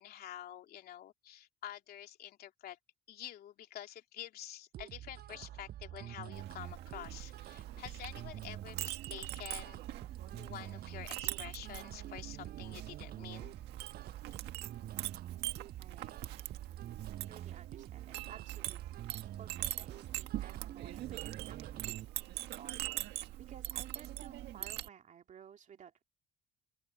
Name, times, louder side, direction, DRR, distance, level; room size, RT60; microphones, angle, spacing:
voice 1, 0.0-2.8 3.1-9.8 10.3-13.6, left 11 dB, 65° left, 3.0 m, -48 dB
sound 1, 4.7-22.1, right 12 dB, 65° right, 7.7 m, -47 dB
Chink clink, 6.3-24.9, right 15 dB, 85° right, 1.6 m, -43 dB
voice 2, 15.8-16.5 17.3-26.0, right 8 dB, 45° right, 2.7 m, -56 dB
open air
cardioid pair, 110°, 17 cm